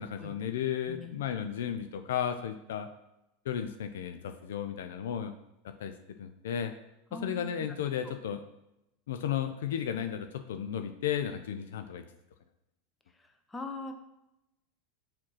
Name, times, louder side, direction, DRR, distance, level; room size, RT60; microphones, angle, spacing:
voice 1, 0.0-2.9 3.5-5.3 5.8-5.9 6.2-6.7 7.2-8.4 9.1-12.0, left 9 dB, 65° left, 8 dB, 0.5 m, -34 dB
voice 2, 0.9-1.2 7.1-8.1 13.2-13.9, left 2 dB, 10° left, 6 dB, 1.0 m, -43 dB
6.4 x 4.3 x 5.7 m, 0.90 s
figure-of-eight pair, 85°, 0 cm